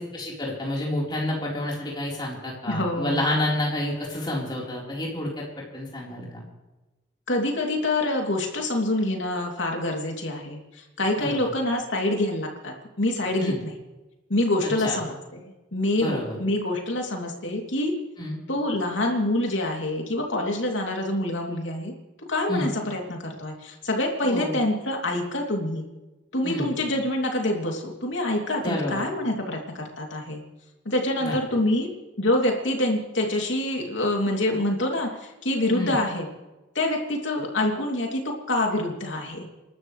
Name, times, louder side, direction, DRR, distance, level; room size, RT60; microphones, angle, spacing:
voice 1, 0.0-5.4 5.7-6.4 11.2-11.5 13.4-13.6 14.8-15.0 16.0-16.4 18.2-18.4 22.5-22.7 24.2-24.6 26.4-26.7 28.6-29.0 31.2-31.3 35.7-35.9, left 1 dB, 25° left, -4 dB, 4.2 m, -29 dB
voice 2, 2.7-3.5 7.3-13.7 14.3-15.1 15.4-18.0 18.5-21.9 22.3-25.9 26.3-30.4 30.8-31.9 32.2-36.3 36.7-39.5, left 1 dB, 75° left, 1 dB, 3.1 m, -26 dB
28.5 x 12.5 x 3.3 m, 1.1 s
head